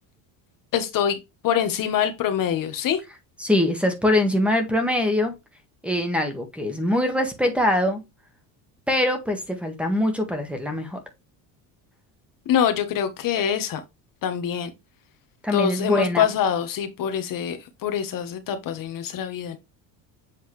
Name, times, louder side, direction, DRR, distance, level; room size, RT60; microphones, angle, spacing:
voice 1, 0.7-1.2 1.4-3.0 12.5-13.8 14.2-14.7 15.5-19.6, left 9 dB, 50° left, 1.2 m, -24 dB
voice 2, 3.4-5.3 5.8-8.0 8.9-11.0 15.4-16.3, left 1 dB, 5° right, 1.5 m, -23 dB
7.7 x 4.0 x 3.2 m
cardioid pair, 135°, 42 cm